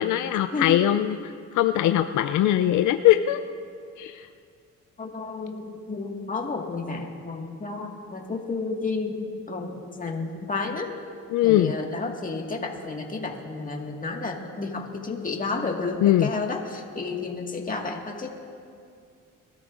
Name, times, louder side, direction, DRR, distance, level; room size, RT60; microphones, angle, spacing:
voice 1, 0.0-3.4 4.0-4.3 11.3-11.7 16.0-16.3, left 12 dB, 75° left, 8 dB, 0.5 m, -21 dB
voice 2, 5.0-10.9 11.4-18.3, left 3 dB, 25° left, 1 dB, 1.8 m, -31 dB
22.5 x 13.5 x 2.5 m, 2.3 s
cardioid pair, 90°, 30 cm